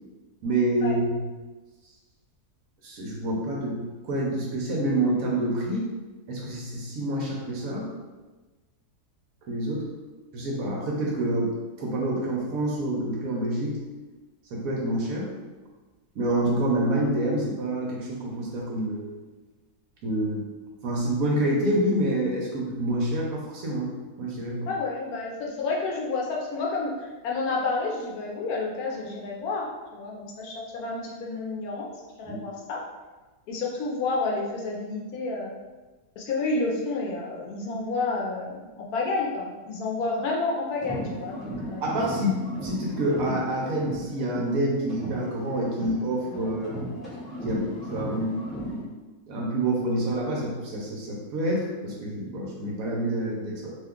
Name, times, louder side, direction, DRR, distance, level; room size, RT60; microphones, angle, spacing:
voice 1, 0.4-1.3 2.8-5.9 6.3-7.9 9.5-9.9 10.3-11.5 11.8-13.8 14.5-15.3 16.1-19.1 20.0-20.5 20.8-23.9 24.2-24.7 32.3-32.4 41.8-46.8 47.4-48.3 49.3-53.7, right 1 dB, 65° right, -3 dB, 1.0 m, -27 dB
voice 2, 24.7-29.7 29.9-31.9 32.2-32.8 33.5-35.5 36.2-41.8, left 3 dB, 70° left, -1 dB, 1.0 m, -30 dB
sound 1, 40.7-44.6 44.9-48.9, equal, ahead, 0.5 m, -36 dB
2.8 x 2.3 x 3.5 m, 1.2 s
omnidirectional pair, 1.7 m